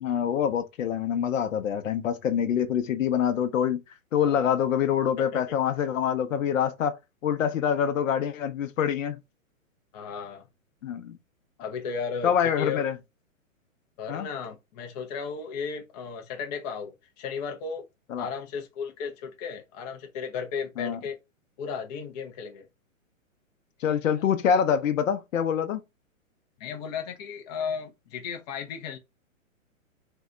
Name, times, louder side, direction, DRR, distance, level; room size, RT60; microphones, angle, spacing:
voice 1, 0.0-3.8 4.1-9.2 10.8-11.2 12.2-12.9 14.1-14.3 18.1-18.3 20.8-21.0 23.8-25.8, left 8 dB, 70° left, 0.7 m, -25 dB
voice 2, 4.2-4.6 5.2-5.6 9.9-10.5 11.6-12.8 14.0-17.8 18.2-21.2 21.6-22.7 26.6-29.0, left 6 dB, 30° left, 0.5 m, -35 dB
2.7 x 2.2 x 3.7 m
hypercardioid pair, 135°, 41 cm